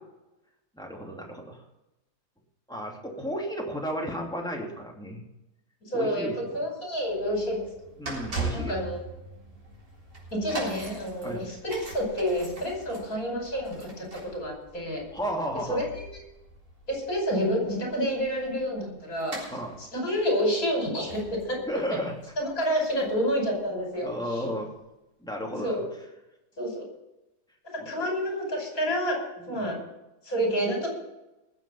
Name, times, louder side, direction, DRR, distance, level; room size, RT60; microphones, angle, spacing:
voice 1, 0.7-1.6 2.7-5.3 5.9-6.6 8.0-8.7 11.2-11.5 15.1-15.9 19.5-19.8 21.7-22.2 24.0-24.7 25.2-25.8 27.8-28.0 29.4-29.7, equal, ahead, -1 dB, 2.8 m, -33 dB
voice 2, 5.8-6.3 6.5-7.7 8.5-9.0 10.3-15.0 15.7-16.0 16.9-19.3 19.8-21.6 22.4-24.4 25.6-25.8 26.6-26.8 27.8-29.2 29.5-29.8 30.3-30.9, equal, 55° left, 0 dB, 5.9 m, -29 dB
sound 1, 7.0-23.9 24.6-24.7, right 2 dB, 60° right, 4.3 m, -41 dB
20.5 x 7.8 x 5.8 m, 0.96 s
omnidirectional pair, 1.7 m